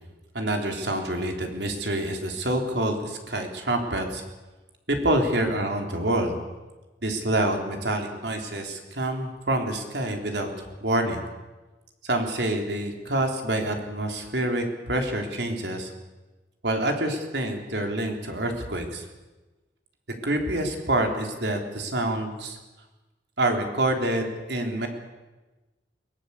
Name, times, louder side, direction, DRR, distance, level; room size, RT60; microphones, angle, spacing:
voice 1, 0.3-4.2 4.9-6.4 7.0-11.2 12.0-15.9 16.6-19.1 20.2-22.6 23.4-24.9, right 1 dB, 75° right, 3 dB, 3.8 m, -27 dB
22.5 x 19.0 x 8.4 m, 1.2 s
head